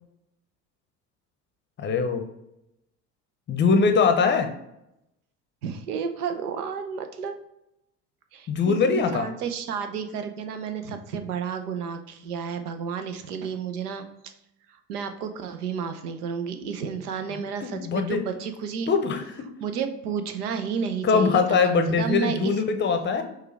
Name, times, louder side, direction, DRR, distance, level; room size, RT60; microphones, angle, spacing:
voice 1, 1.8-2.2 3.5-4.5 8.5-9.3 17.3-18.2 18.9-19.5 21.0-23.2, left 5 dB, 25° left, 6 dB, 0.7 m, -22 dB
voice 2, 5.6-7.4 8.3-14.3 14.7-18.9 19.6-22.5, right 6 dB, 70° right, 8 dB, 0.7 m, -31 dB
6.5 x 2.4 x 3.3 m, 0.83 s
figure-of-eight pair, 65°, 47 cm